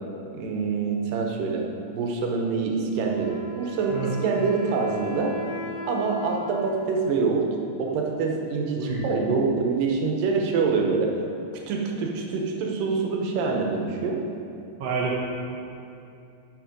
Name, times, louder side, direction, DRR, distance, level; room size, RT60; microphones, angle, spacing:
voice 1, 0.3-1.6 1.9-5.3 5.9-7.5 7.8-11.1 11.7-14.2, right 4 dB, 85° right, 1 dB, 2.7 m, -25 dB
Wind instrument woodwind instrument, 2.9-8.4, equal, 45° left, 2.7 m, -38 dB
voice 2, 8.8-9.1 14.8-15.2, right 5 dB, 60° right, -6 dB, 1.9 m, -28 dB
9.0 x 7.1 x 5.2 m, 2.7 s
omnidirectional pair, 3.8 m